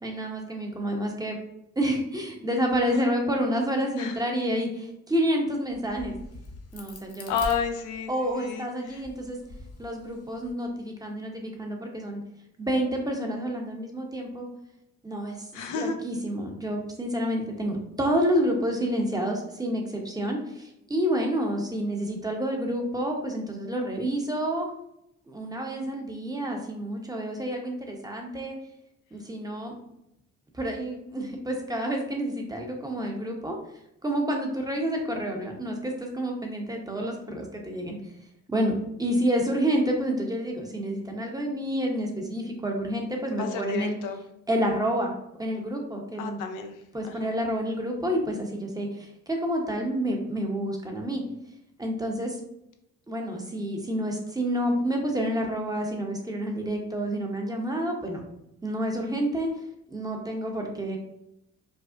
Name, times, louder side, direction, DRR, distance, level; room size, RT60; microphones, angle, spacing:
voice 1, 0.0-1.4 1.8-6.1 6.7-7.3 8.1-9.4 9.8-12.2 12.6-14.5 15.0-24.7 25.3-28.6 29.1-29.7 30.5-33.6 34.0-38.0 38.5-43.9 44.5-45.1 45.4-46.4 46.9-51.2 51.8-52.4 53.1-58.2 58.6-59.5 59.9-61.0, equal, 10° right, 1 dB, 0.7 m, -29 dB
Crack, 5.7-8.3 8.9-10.5, left 2 dB, 55° left, 0.8 m, -43 dB
voice 2, 7.3-9.0 15.5-16.0 43.3-44.2 46.2-47.3, left 6 dB, 90° left, 5 dB, 0.5 m, -32 dB
5.0 x 2.0 x 2.4 m, 0.83 s
cardioid pair, 90°, 30 cm